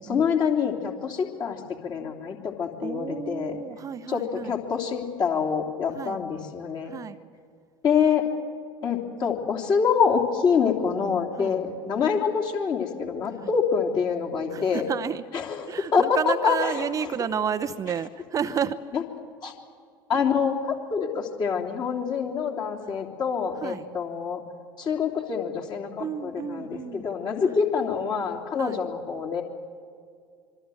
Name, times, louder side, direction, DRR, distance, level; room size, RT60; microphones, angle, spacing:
voice 1, 0.0-3.6 4.1-6.9 7.8-8.3 8.8-14.9 15.3-16.8 18.9-19.0 19.4-19.5 20.1-24.4 24.8-29.4, left 6 dB, 35° left, 1 dB, 3.3 m, -26 dB
voice 2, 2.8-4.5 5.9-6.2 6.8-7.2 11.4-11.6 13.4-13.5 14.5-15.2 15.7-18.8 23.6-23.9 26.0-27.0 27.4-27.6 28.6-28.8, right 7 dB, 30° right, 10 dB, 0.8 m, -31 dB
25.5 x 24.5 x 7.9 m, 2.2 s
figure-of-eight pair, 70°, 12 cm